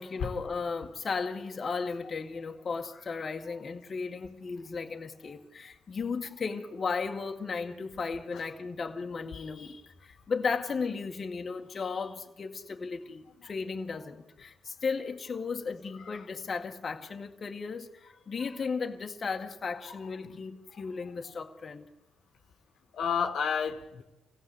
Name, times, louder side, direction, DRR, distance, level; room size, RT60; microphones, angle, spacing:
voice 1, 0.0-21.9, left 5 dB, 40° left, 2.0 m, -35 dB
voice 2, 22.9-24.0, left 7 dB, 70° left, 2.0 m, -32 dB
26.0 x 17.0 x 8.1 m
cardioid pair, 90°, 0 cm